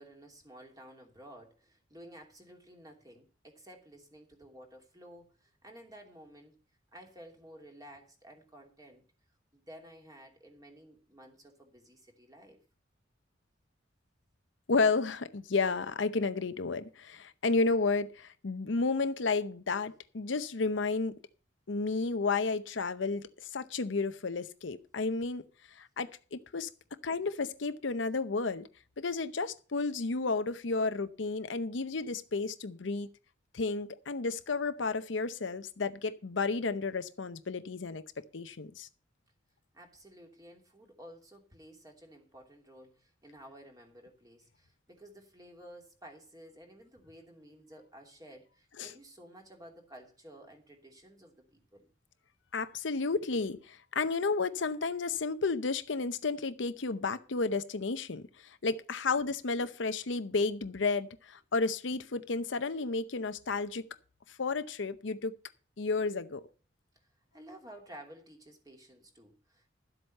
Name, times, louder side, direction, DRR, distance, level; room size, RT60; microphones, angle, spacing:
voice 1, 0.0-6.5 6.9-9.0 9.5-12.6 39.7-51.9 67.3-69.7, right 1 dB, 20° right, 2.8 m, -53 dB
voice 2, 14.7-21.1 21.7-25.4 25.7-26.7 27.0-28.7 29.0-33.1 33.5-38.9 48.8-48.9 52.5-63.8 64.3-65.3 65.8-66.4, left 4 dB, 70° left, 0.7 m, -32 dB
12.0 x 7.9 x 5.4 m
head